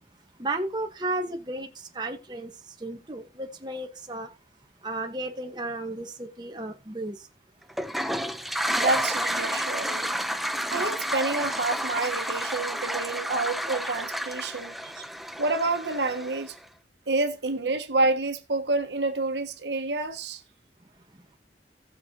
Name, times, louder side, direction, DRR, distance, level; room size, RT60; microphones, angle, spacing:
voice 1, 0.4-1.7 1.9-2.5 2.8-4.3 4.8-7.2, right 2 dB, 25° right, 1.3 m, -33 dB
Toilet flush, 7.7-16.6, equal, ahead, 0.6 m, -30 dB
voice 2, 8.8-10.1 10.7-14.8 15.4-16.5 17.1-20.4, right 3 dB, 80° right, 1.3 m, -28 dB
18.5 x 6.5 x 2.9 m
head